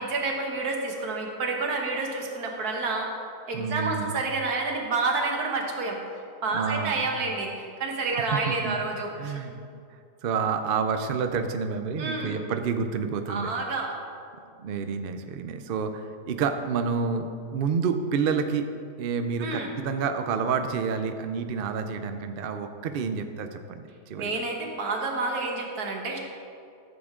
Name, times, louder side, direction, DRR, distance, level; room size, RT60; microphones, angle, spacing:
voice 1, 0.0-3.1 3.5-6.0 6.4-9.6 12.0-12.3 13.3-13.9 19.4-19.7 24.2-26.2, right 3 dB, 65° right, 1 dB, 1.8 m, -29 dB
voice 2, 3.5-4.1 6.5-7.0 8.5-8.8 9.2-9.5 10.2-13.5 14.6-18.7 19.0-24.3, right 5 dB, 85° right, 7 dB, 0.5 m, -29 dB
14.0 x 7.1 x 3.7 m, 2.4 s
omnidirectional pair, 1.8 m